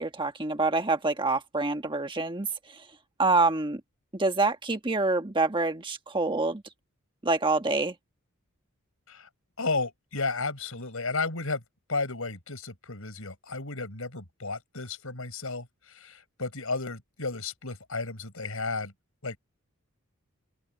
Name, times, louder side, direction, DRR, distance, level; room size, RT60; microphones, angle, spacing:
voice 1, 0.0-2.9 3.2-3.8 4.1-6.6 7.2-7.9, right 3 dB, 20° right, 1.4 m, -26 dB
voice 2, 9.6-11.6 11.9-18.9 19.2-19.4, left 3 dB, 70° left, 4.9 m, -33 dB
open air
head